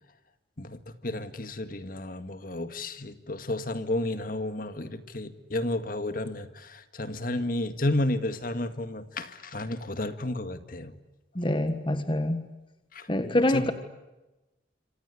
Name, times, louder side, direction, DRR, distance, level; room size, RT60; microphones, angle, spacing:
voice 1, 0.6-10.9 12.9-13.7, left 1 dB, 50° left, 10 dB, 1.9 m, -32 dB
voice 2, 11.4-12.5 13.1-13.7, left 1 dB, 30° left, 9 dB, 1.5 m, -25 dB
27.0 x 26.0 x 8.3 m, 1.0 s
head